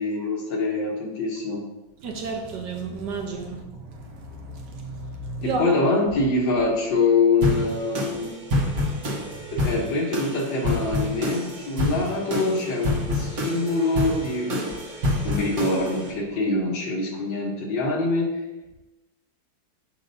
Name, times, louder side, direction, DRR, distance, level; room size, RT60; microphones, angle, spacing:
voice 1, 0.0-1.6 5.4-8.3 9.5-14.8 15.2-18.4, left 3 dB, 70° left, 0 dB, 1.7 m, -24 dB
voice 2, 2.0-5.7 8.6-9.0, right 3 dB, 65° right, 2 dB, 1.3 m, -32 dB
sound 1, 7.4-16.1, left 1 dB, 50° right, 1.6 m, -28 dB
6.5 x 6.2 x 2.7 m, 1.0 s
omnidirectional pair, 2.1 m